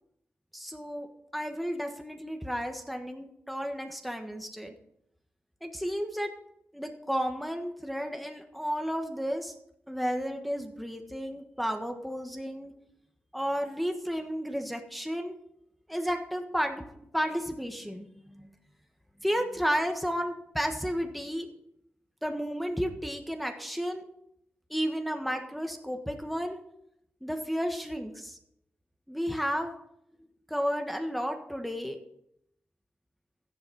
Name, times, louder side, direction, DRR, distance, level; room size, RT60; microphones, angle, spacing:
voice 1, 0.5-1.1 1.3-4.7 5.6-6.3 6.7-9.5 9.9-12.7 13.3-15.4 15.9-16.8 17.1-18.5 19.2-21.5 22.2-24.0 24.7-26.6 27.2-28.4 29.1-29.7 30.5-32.0, equal, ahead, 3 dB, 1.5 m, -32 dB
13.0 x 10.5 x 5.5 m, 0.78 s
cardioid pair, 90°, 4 cm